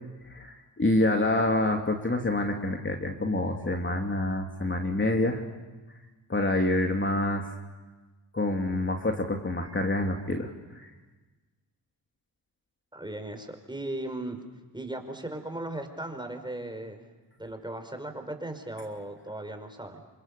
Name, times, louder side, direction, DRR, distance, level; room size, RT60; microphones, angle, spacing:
voice 1, 0.3-5.4 6.3-7.5 8.3-10.9, left 2 dB, 25° left, 2 dB, 3.0 m, -27 dB
voice 2, 12.9-14.4 14.7-17.1 17.4-20.0, right 1 dB, 10° right, 7 dB, 5.3 m, -37 dB
28.5 x 25.5 x 7.0 m, 1.2 s
supercardioid pair, 55°, 46 cm